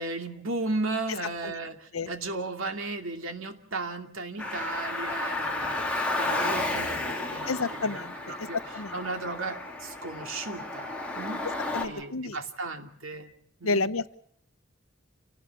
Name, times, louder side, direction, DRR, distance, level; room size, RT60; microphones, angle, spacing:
voice 1, 0.0-8.6 8.9-11.4 11.8-13.3 13.6-13.9, right 3 dB, 75° right, 5 dB, 2.6 m, -35 dB
Car, 4.4-11.9, left 2 dB, 5° left, 3.5 m, -32 dB
voice 2, 7.5-8.9 11.7-12.4 13.6-14.2, left 3 dB, 80° left, 13 dB, 1.0 m, -30 dB
28.5 x 19.0 x 7.2 m, 0.67 s
head